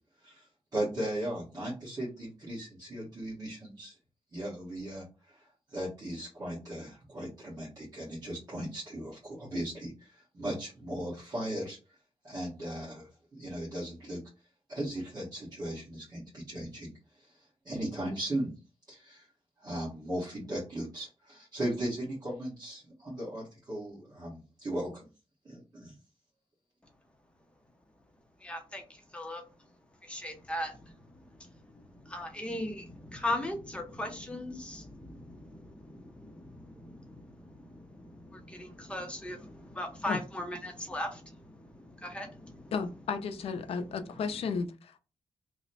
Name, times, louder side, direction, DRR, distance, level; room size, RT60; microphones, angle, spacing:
voice 1, 0.7-3.9 4.3-11.8 12.2-14.2 14.7-16.9 17.2-17.3 17.6-18.5 18.9-19.3 19.6-25.1 25.4-25.9, right 1 dB, 40° right, 1.3 m, -37 dB
voice 2, 28.4-29.4 30.0-42.7, left 1 dB, 10° left, 0.7 m, -39 dB
voice 3, 42.7-45.0, left 5 dB, 75° left, 0.5 m, -33 dB
3.0 x 2.1 x 4.0 m
wide cardioid pair, 135°, 10 cm